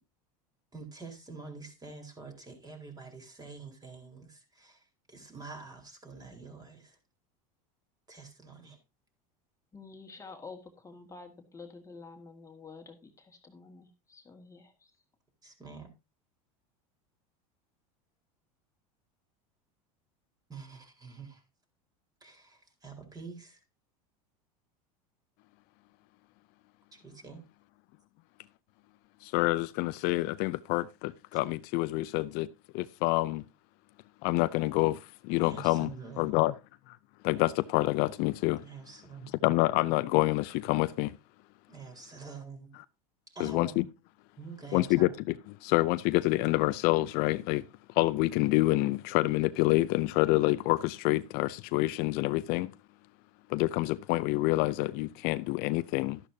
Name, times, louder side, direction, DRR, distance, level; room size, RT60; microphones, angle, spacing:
voice 1, 0.7-7.0 8.1-8.8 15.4-15.9 20.5-21.4 22.2-23.6 26.9-27.4 35.4-36.3 38.6-39.5 41.7-42.7 43.3-43.8 44.4-45.1, right 4 dB, 20° right, 4.4 m, -46 dB
voice 2, 9.7-14.9, left 4 dB, 15° left, 2.0 m, -49 dB
voice 3, 29.2-32.5 32.7-33.4 34.2-35.9 36.2-36.5 36.9-37.0 37.2-38.6 39.4-41.1 43.4-43.8 44.7-45.1 45.6-47.6 47.9-52.7 53.5-56.2, left 19 dB, 60° left, 0.6 m, -27 dB
12.5 x 11.0 x 2.8 m
supercardioid pair, 105°, 18 cm